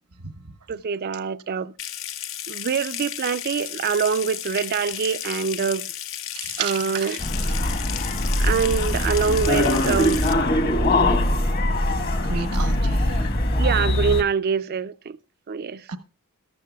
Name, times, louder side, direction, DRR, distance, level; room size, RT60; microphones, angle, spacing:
voice 1, 0.7-1.7 2.5-5.8 6.6-7.2 8.4-10.2 12.8-12.9 13.6-14.9 15.5-15.8, right 6 dB, 45° right, 0.4 m, -24 dB
Water tap faucet / Sink (filling or washing) / Trickle dribble, 1.8-10.3, left 11 dB, 60° left, 0.7 m, -34 dB
voice 2, 6.3-7.1 12.2-13.2 15.9-16.0, right 6 dB, 85° right, 1.1 m, -31 dB
sound 1, 7.2-14.2, left 1 dB, 45° left, 1.4 m, -22 dB
14.0 x 13.0 x 2.3 m
head